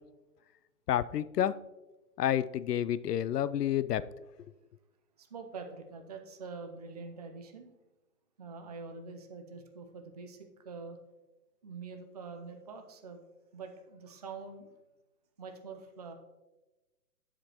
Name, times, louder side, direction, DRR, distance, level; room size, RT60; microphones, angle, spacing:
voice 1, 0.9-1.6 2.2-4.0, left 11 dB, 85° left, 0.5 m, -29 dB
voice 2, 5.2-7.7 8.4-11.0 11.6-13.2 13.5-14.7 15.4-16.1, right 4 dB, 30° right, 0.4 m, -45 dB
12.5 x 5.1 x 2.9 m
hypercardioid pair, 145°, 46 cm